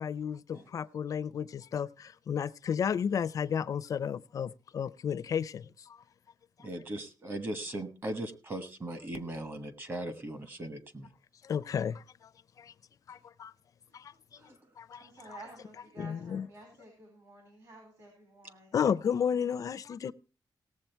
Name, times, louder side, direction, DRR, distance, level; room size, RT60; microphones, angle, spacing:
voice 1, 0.0-5.6 11.4-12.0 12.6-12.7 13.1-13.5 13.9-14.1 14.8-15.0 16.0-16.5 18.7-20.1, left 7 dB, 50° left, 0.5 m, -32 dB
voice 2, 6.6-11.1 14.4-14.6, right 1 dB, 30° right, 1.2 m, -38 dB
voice 3, 15.0-18.8, right 2 dB, 55° right, 4.4 m, -52 dB
17.5 x 7.6 x 4.5 m
wide cardioid pair, 170°, 8 cm